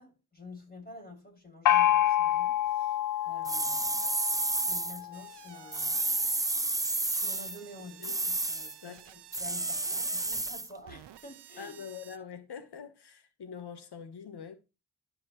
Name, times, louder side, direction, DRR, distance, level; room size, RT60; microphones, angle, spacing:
voice 1, 0.0-3.0 3.2-4.1 4.6-6.0 7.1-11.9, left 2 dB, 25° left, 6.1 m, -49 dB
Gong, 1.7-5.2, left 13 dB, 50° left, 0.4 m, -27 dB
sound 1, 3.5-5.0 5.7-7.6 8.0-8.7 9.3-10.7, right 2 dB, 10° right, 0.4 m, -31 dB
sound 2, 5.1-12.2, right 11 dB, 85° right, 0.7 m, -53 dB
voice 2, 11.6-14.6, left 7 dB, 75° left, 1.4 m, -44 dB
12.0 x 5.7 x 3.1 m
cardioid pair, 40°, 40 cm